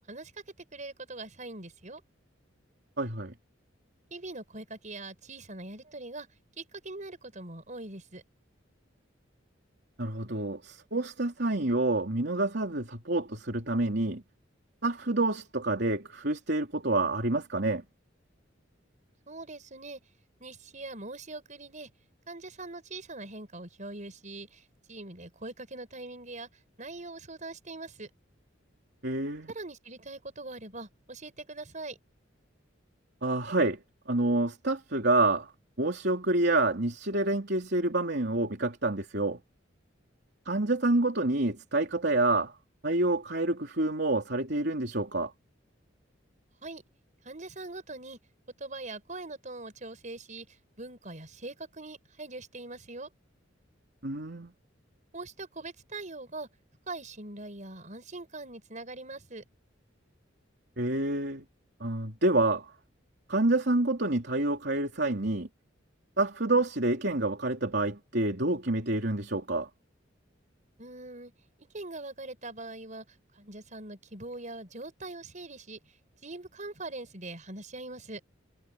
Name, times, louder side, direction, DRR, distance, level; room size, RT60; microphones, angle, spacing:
voice 1, 0.6-2.0 4.1-6.3 6.6-8.2 19.3-20.0 20.4-21.9 22.3-26.5 26.8-28.1 29.5-32.0 46.6-46.8 47.2-48.2 48.6-53.1 55.1-56.5 56.9-59.4 70.8-71.3 71.7-75.8 76.2-78.2, right 2 dB, 40° right, 5.8 m, -42 dB
voice 2, 3.0-3.3 10.0-14.2 14.8-17.8 29.0-29.5 33.2-35.5 35.8-39.4 40.5-42.6 42.8-45.3 54.0-54.5 60.8-61.4 61.8-62.7 63.3-65.5 66.2-69.7, right 2 dB, 60° right, 3.5 m, -28 dB
head